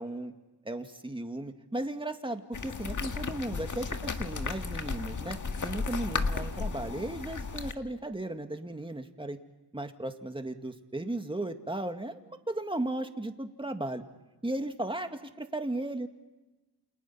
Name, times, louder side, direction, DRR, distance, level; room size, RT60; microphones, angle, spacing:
voice 1, 0.0-0.3 0.7-5.4 5.6-9.4 9.7-12.2 12.5-14.0 14.4-16.1, right 1 dB, 10° right, 6 dB, 2.1 m, -35 dB
sound 1, 2.5-7.7, left 4 dB, 45° left, 1.7 m, -34 dB
29.0 x 28.0 x 5.7 m, 1.1 s
cardioid pair, 85°, 43 cm